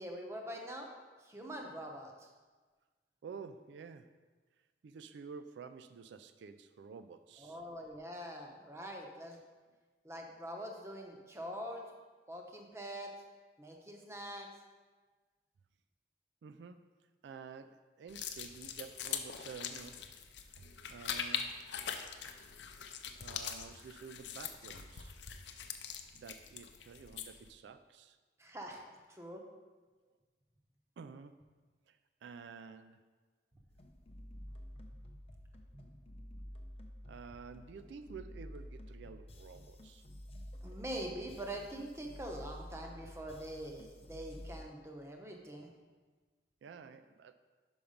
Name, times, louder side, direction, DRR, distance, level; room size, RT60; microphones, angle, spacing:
voice 1, 0.0-2.3 7.4-9.4 10.0-11.8 12.3-13.1 13.6-14.5 28.4-28.8 29.1-29.4 35.7-35.9 40.6-45.7, right 1 dB, 15° right, 2 dB, 0.7 m, -44 dB
voice 2, 3.2-4.1 4.8-7.6 16.4-16.8 17.2-20.0 20.6-21.6 23.2-25.2 26.1-28.2 31.0-31.4 31.9-33.1 37.1-40.1 46.6-47.3, right 5 dB, 75° right, 10 dB, 0.3 m, -50 dB
sound 1, 18.1-27.5, left 7 dB, 75° left, 0.5 m, -42 dB
sound 2, 33.7-44.6, equal, 35° left, 0.6 m, -50 dB
5.8 x 5.4 x 5.0 m, 1.4 s
head